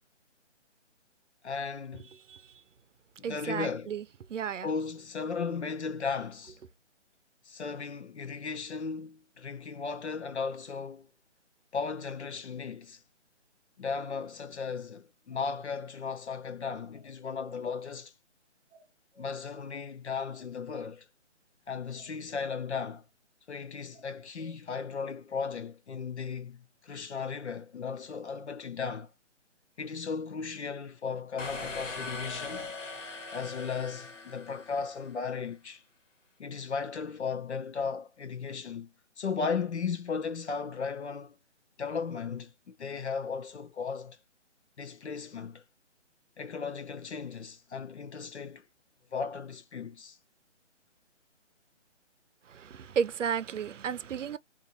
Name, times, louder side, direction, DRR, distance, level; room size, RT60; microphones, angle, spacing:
voice 1, 1.4-2.1 3.2-4.0 4.6-6.6 7.4-11.1 11.7-13.0 13.8-18.1 19.2-21.1 21.7-23.0 23.5-29.1 29.8-32.7 33.3-35.8 36.4-41.4 41.8-44.2 44.8-45.6 46.4-48.7 49.1-50.2, left 5 dB, 65° left, 0.8 m, -36 dB
voice 2, 3.2-4.0 4.3-4.7 52.5-54.4, right 7 dB, 85° right, 0.6 m, -33 dB
sound 1, 15.3-16.0 16.9-17.6 18.7-19.5 20.3-21.0 21.9-22.6 23.9-24.6 27.9-28.5, right 3 dB, 5° left, 0.7 m, -57 dB
sound 2, 31.4-35.1, left 3 dB, 90° left, 1.2 m, -41 dB
3.8 x 2.5 x 2.6 m
hypercardioid pair, 175°, 36 cm